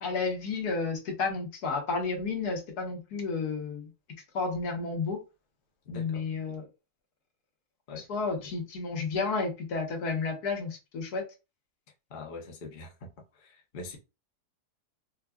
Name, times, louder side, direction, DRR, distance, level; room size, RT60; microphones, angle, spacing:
voice 1, 0.0-3.9 4.3-5.2 5.9-6.6 7.9-11.2, left 4 dB, 70° left, 1.5 m, -31 dB
voice 2, 5.9-6.6 7.9-8.0 8.4-8.5 12.1-14.0, left 3 dB, 45° left, 0.7 m, -44 dB
4.4 x 2.4 x 2.3 m
omnidirectional pair, 1.7 m